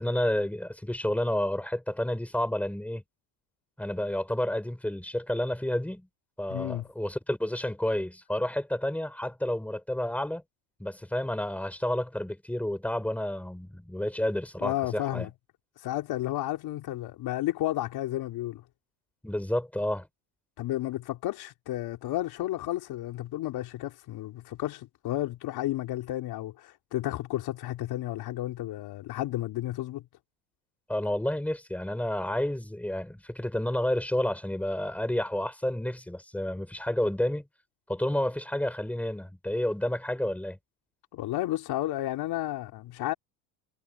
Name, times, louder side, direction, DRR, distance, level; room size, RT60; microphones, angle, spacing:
voice 1, 0.0-3.0 3.8-6.1 6.4-10.4 10.8-15.3 19.2-20.1 30.9-37.4 37.9-40.6, left 1 dB, 5° left, 6.5 m, -30 dB
voice 2, 6.5-6.9 14.6-15.3 15.8-18.6 20.6-30.0 41.1-43.1, left 15 dB, 60° left, 3.6 m, -32 dB
supercardioid pair, 100°, 44 cm